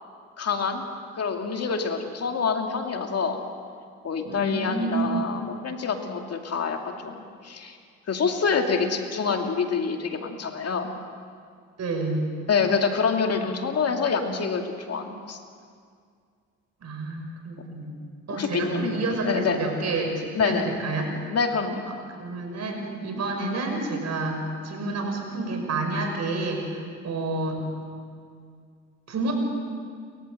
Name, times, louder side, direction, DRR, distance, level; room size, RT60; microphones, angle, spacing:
voice 1, 0.4-0.8 1.2-3.4 4.0-7.8 8.1-10.9 12.5-15.4 18.3-19.0 19.2-19.6 20.4-20.7 21.3-21.8, left 5 dB, 50° left, 4 dB, 2.5 m, -26 dB
voice 2, 4.2-5.3 11.8-12.3 16.8-17.9 18.3-21.1 22.2-27.6 29.1-29.3, right 2 dB, 55° right, 3 dB, 5.9 m, -29 dB
29.0 x 15.0 x 7.7 m, 2.2 s
supercardioid pair, 65°, 32 cm